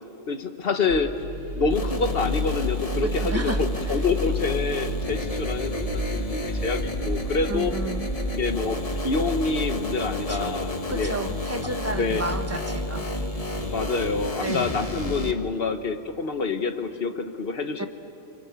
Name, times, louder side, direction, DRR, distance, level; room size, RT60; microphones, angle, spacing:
voice 1, 0.3-1.2 1.6-7.7 8.3-11.1 12.0-12.2 13.7-17.9, left 4 dB, 50° left, 8 dB, 1.5 m, -27 dB
sound 1, 0.9-14.3, left 1 dB, 70° right, 3.3 m, -35 dB
sound 2, 1.7-15.3, left 1 dB, 30° left, 1.5 m, -30 dB
voice 2, 3.0-4.0 7.5-8.1 10.3-10.5 10.9-13.1 14.4-14.8 17.8-17.9, right 2 dB, 10° right, 6 dB, 1.2 m, -32 dB
29.5 x 23.0 x 8.3 m, 2.8 s
omnidirectional pair, 1.3 m